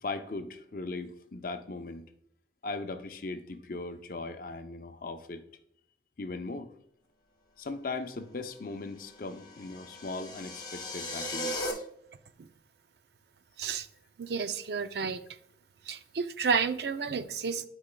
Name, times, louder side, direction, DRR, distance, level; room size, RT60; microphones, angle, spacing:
voice 1, 0.0-2.1 2.6-5.4 6.2-6.7 7.6-11.9, left 3 dB, 50° left, 8 dB, 0.5 m, -38 dB
sound 1, 9.1-11.7, left 1 dB, 25° left, 0.9 m, -37 dB
voice 2, 14.2-15.2 15.9-17.7, right 5 dB, 65° right, 11 dB, 0.4 m, -31 dB
11.5 x 4.9 x 2.2 m, 0.70 s
head